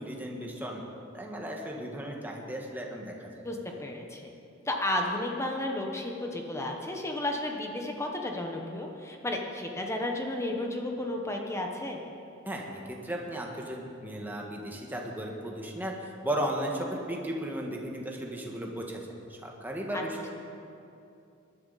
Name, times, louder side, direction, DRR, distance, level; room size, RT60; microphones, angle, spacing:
voice 1, 0.0-3.4 12.4-19.0 19.3-20.3, right 1 dB, 10° right, -1 dB, 1.7 m, -35 dB
voice 2, 3.4-4.3 4.6-12.0 19.9-20.0, left 1 dB, 15° left, 1 dB, 1.3 m, -33 dB
20.5 x 11.5 x 4.2 m, 2.7 s
head